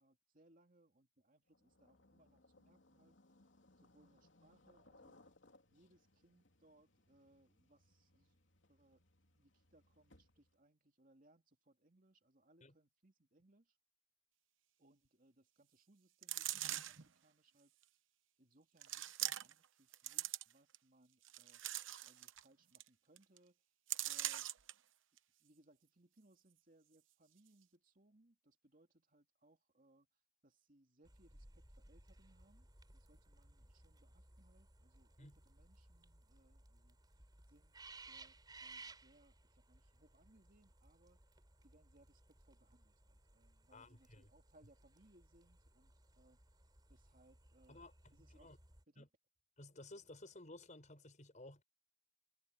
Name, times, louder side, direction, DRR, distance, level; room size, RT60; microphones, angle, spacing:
voice 1, 0.0-3.2 3.8-5.2 5.7-8.4 8.7-13.8 14.8-17.7 18.4-21.6 22.0-23.6 24.0-24.5 25.4-30.1 30.4-32.7 32.9-37.0 37.5-38.4 38.6-41.2 41.6-46.4 46.9-47.8 48.1-48.6 48.9-49.1, right 1 dB, 45° right, 2.6 m, -71 dB
sound 1, 1.5-10.6, left 2 dB, 70° left, 3.1 m, -69 dB
sound 2, 16.2-17.1 17.8-17.9 18.8-19.7 19.9-20.8 21.2-22.4 22.8-22.9 23.2-23.4 23.9-24.7 25.2-25.3, right 14 dB, 80° right, 0.9 m, -42 dB
sound 3, 31.0-48.8, right 3 dB, 20° right, 4.2 m, -61 dB
voice 2, 43.7-44.3 47.7-48.6 49.0-49.1 49.6-51.6, left 2 dB, 40° left, 5.6 m, -56 dB
head